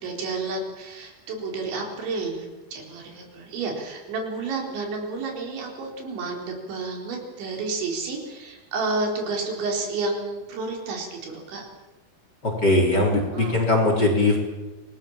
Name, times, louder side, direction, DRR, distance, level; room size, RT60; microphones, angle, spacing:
voice 1, 0.0-11.7 13.3-13.6, right 3 dB, 75° right, 1 dB, 6.6 m, -30 dB
voice 2, 12.4-14.4, left 2 dB, 25° left, 1 dB, 3.8 m, -20 dB
28.5 x 20.0 x 7.4 m, 1.1 s
omnidirectional pair, 5.2 m